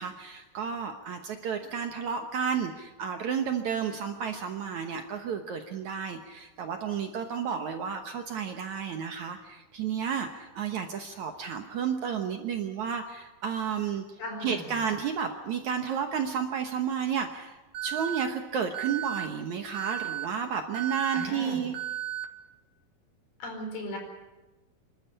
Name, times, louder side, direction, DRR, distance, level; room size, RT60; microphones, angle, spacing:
voice 1, 0.0-14.0 14.4-17.6 17.8-21.8, right 7 dB, 65° right, 6 dB, 2.0 m, -32 dB
voice 2, 14.2-14.7 21.1-21.6 23.4-24.0, left 1 dB, 75° left, 2 dB, 6.6 m, -37 dB
Alarm, 17.7-18.2 18.7-19.2 19.7-20.2 20.7-21.2 21.7-22.2, right 11 dB, 90° right, 3.9 m, -34 dB
26.5 x 13.0 x 9.9 m, 1.1 s
omnidirectional pair, 4.5 m